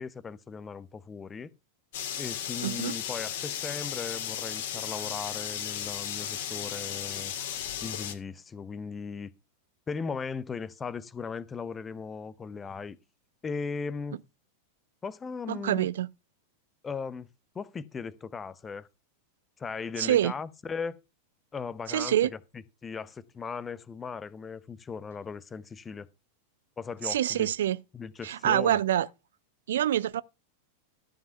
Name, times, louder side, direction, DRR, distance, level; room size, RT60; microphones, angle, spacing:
voice 1, 0.0-1.5 2.2-7.3 7.8-9.3 9.9-13.0 13.4-14.2 15.0-15.9 16.8-17.3 17.5-18.9 19.6-21.0 21.5-22.4 22.8-26.1 26.8-27.5 27.9-28.8, left 5 dB, 15° left, 0.8 m, -37 dB
sound 1, 1.9-8.2, left 9 dB, 55° left, 2.0 m, -35 dB
voice 2, 2.6-2.9 15.5-16.1 20.0-20.3 21.9-22.3 27.0-27.8 28.2-29.1 29.7-30.2, right 11 dB, 60° right, 0.5 m, -26 dB
13.0 x 5.6 x 5.9 m
figure-of-eight pair, 90°, 0 cm